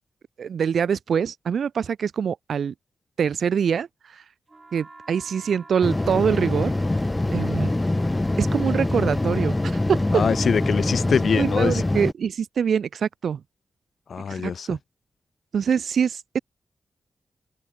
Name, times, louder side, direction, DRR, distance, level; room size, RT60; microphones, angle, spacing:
voice 1, 0.4-2.7 3.2-3.9 4.1-4.2 4.7-6.7 7.3-7.7 8.4-10.2 11.4-13.4 14.3-14.8 15.5-16.4, right 7 dB, 80° right, 0.9 m, -24 dB
sound 1, 4.5-11.7, right 3 dB, 30° right, 6.0 m, -47 dB
sound 2, 5.8-12.1, left 2 dB, 20° left, 1.6 m, -24 dB
voice 2, 10.1-11.8 14.1-14.7, left 6 dB, 70° left, 0.5 m, -23 dB
open air
cardioid pair, 75°, 0 cm